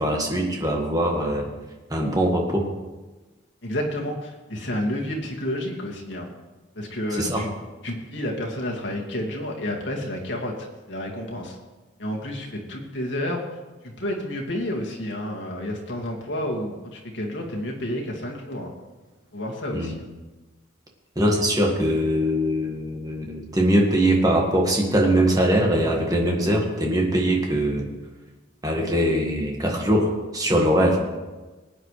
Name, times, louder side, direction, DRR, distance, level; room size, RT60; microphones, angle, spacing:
voice 1, 0.0-1.5 1.9-2.7 7.2-7.4 19.7-20.0 21.1-27.8 28.6-31.0, right 1 dB, 20° right, 0 dB, 1.7 m, -22 dB
voice 2, 3.6-6.3 6.8-7.5 7.8-11.6 12.0-13.6 14.0-18.7 19.3-20.1, left 1 dB, 65° left, -1 dB, 2.3 m, -30 dB
19.5 x 9.3 x 3.3 m, 1.2 s
head